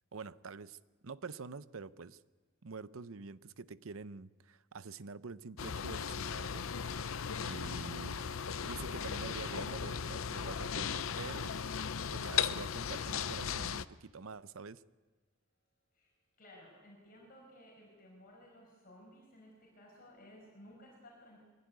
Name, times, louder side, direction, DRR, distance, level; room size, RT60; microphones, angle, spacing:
voice 1, 0.1-2.2 2.6-6.7 7.4-8.3 8.6-11.6 12.1-14.8, right 4 dB, 75° right, 15 dB, 0.7 m, -46 dB
sound 1, 5.6-13.9, left 7 dB, 70° left, 0.6 m, -37 dB
voice 2, 16.4-21.4, left 1 dB, 45° left, -2 dB, 5.7 m, -57 dB
23.5 x 16.5 x 9.6 m, 1.3 s
head